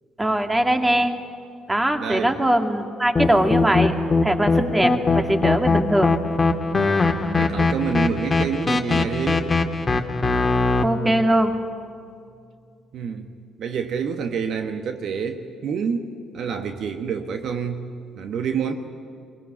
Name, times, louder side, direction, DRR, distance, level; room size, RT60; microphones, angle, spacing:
voice 1, 0.2-1.2 1.7-3.9 4.2-6.1 10.8-11.5, right 1 dB, 15° right, 5 dB, 2.3 m, -21 dB
voice 2, 2.0-2.4 7.3-9.5 12.9-13.3 13.6-16.1 16.3-17.8 18.2-18.7, right 6 dB, 55° right, 6 dB, 1.2 m, -27 dB
sound 1, 3.2-10.8, left 3 dB, 25° left, 1.8 m, -21 dB
22.5 x 19.0 x 9.6 m, 2.4 s
figure-of-eight pair, 45°, 0 cm